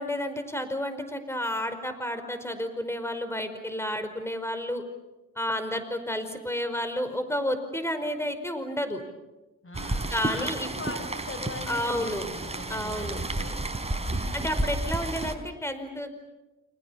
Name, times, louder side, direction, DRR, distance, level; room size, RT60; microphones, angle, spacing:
voice 1, 0.0-4.8 5.3-9.0 10.1-10.7 11.7-12.2 12.7-13.2 14.1-16.2, left 1 dB, 5° left, 9 dB, 5.1 m, -31 dB
voice 2, 9.6-13.6, left 2 dB, 35° left, 9 dB, 4.4 m, -40 dB
Rain, 9.7-15.3, right 2 dB, 15° right, 4.5 m, -31 dB
29.5 x 27.0 x 7.1 m, 1.0 s
hypercardioid pair, 50°, 37 cm